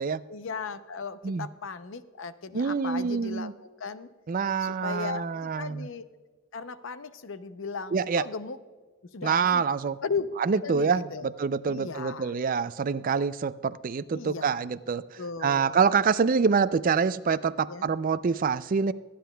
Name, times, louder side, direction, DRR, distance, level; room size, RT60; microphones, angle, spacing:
voice 1, 0.3-3.5 3.8-4.1 4.6-6.0 6.5-8.6 9.1-9.6 10.0-10.3 10.6-11.3 11.7-12.3 14.1-14.7 15.2-15.8 17.7-17.9, left 5 dB, 65° left, 13 dB, 0.6 m, -36 dB
voice 2, 2.5-3.5 4.3-5.9 7.9-8.2 9.2-10.0 10.4-15.0 15.4-18.9, right 5 dB, 40° right, 15 dB, 0.4 m, -26 dB
23.0 x 10.0 x 2.3 m, 1.4 s
head